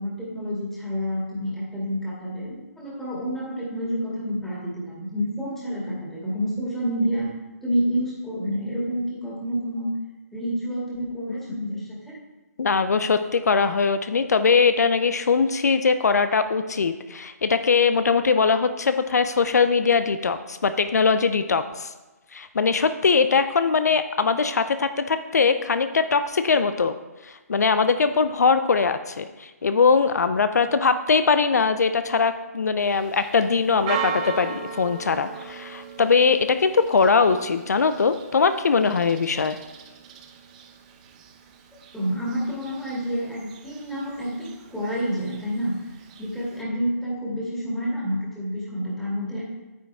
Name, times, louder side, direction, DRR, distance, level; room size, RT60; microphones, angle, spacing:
voice 1, 0.0-7.3 7.6-9.9 10.3-12.1 41.9-45.8 46.2-49.4, equal, 5° left, -7 dB, 2.2 m, -28 dB
voice 2, 12.6-21.9 22.3-26.9 27.2-39.6, left 5 dB, 75° left, 10 dB, 0.6 m, -21 dB
Church bell, 32.8-46.6, right 7 dB, 25° right, 0.8 m, -39 dB
9.2 x 8.7 x 3.5 m, 1.1 s
hypercardioid pair, 160°, 9 cm